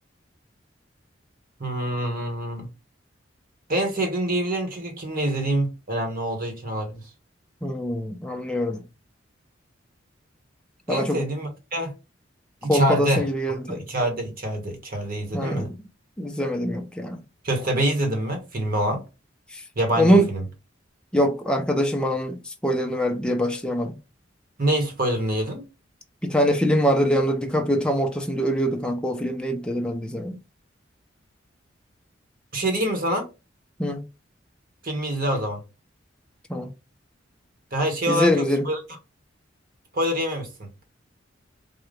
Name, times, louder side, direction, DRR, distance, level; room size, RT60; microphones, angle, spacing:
voice 1, 1.6-2.7 3.7-7.0 10.9-11.9 12.6-13.2 13.5-15.7 17.4-19.0 19.8-20.4 24.6-25.6 32.5-33.3 34.8-35.6 37.7-38.8 39.9-40.7, right 1 dB, 45° right, 1.2 m, -26 dB
voice 2, 7.6-8.8 10.9-11.2 12.7-13.8 15.3-15.8 16.2-17.2 20.0-20.3 21.1-24.0 26.2-30.4 33.8-34.1 36.5-36.7 38.1-38.7, equal, 5° left, 0.5 m, -23 dB
3.8 x 2.3 x 3.2 m
head